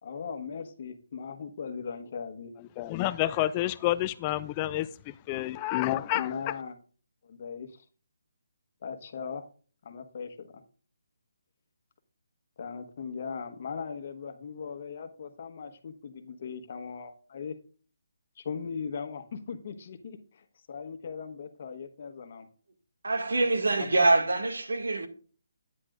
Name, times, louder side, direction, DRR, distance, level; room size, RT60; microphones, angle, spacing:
voice 1, 0.0-2.5 6.1-6.7 7.2-7.7 8.8-9.5 9.8-10.6 12.6-17.6 18.4-22.5 23.7-23.9, left 6 dB, 45° left, 1.2 m, -39 dB
voice 2, 2.8-6.5, left 15 dB, 20° left, 0.3 m, -29 dB
voice 3, 23.0-25.1, right 2 dB, 85° right, 2.0 m, -25 dB
9.8 x 9.7 x 2.5 m
hypercardioid pair, 160°, 0 cm